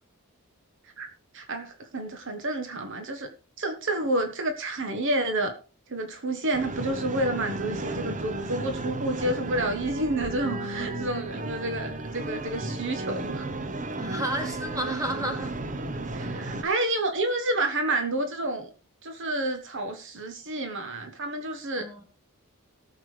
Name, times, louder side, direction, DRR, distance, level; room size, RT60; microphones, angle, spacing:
voice 1, 1.3-3.3 3.6-5.5 5.9-13.5 16.1-18.7 19.0-21.9, right 1 dB, 60° right, 1.3 m, -29 dB
sound 1, 6.5-16.6, right 2 dB, 35° right, 1.0 m, -34 dB
voice 2, 14.0-15.6 21.8-22.0, right 1 dB, 15° right, 2.5 m, -31 dB
18.5 x 7.2 x 3.3 m
head